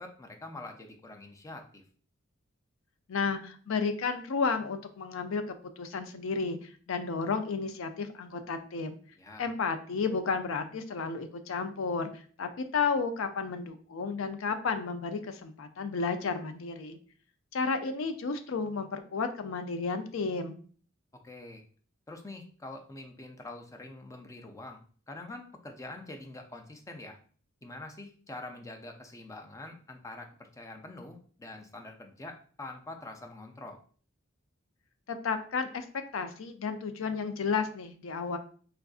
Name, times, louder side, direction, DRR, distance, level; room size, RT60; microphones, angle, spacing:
voice 1, 0.0-1.8 9.1-9.5 21.2-21.6 22.1-24.8 25.1-27.2 27.6-33.8, left 2 dB, 15° left, 4 dB, 0.4 m, -45 dB
voice 2, 3.1-9.0 9.4-17.0 17.5-20.6 35.1-35.8 36.1-38.4, left 5 dB, 70° left, 8 dB, 0.4 m, -32 dB
4.4 x 2.5 x 2.4 m, 0.43 s
head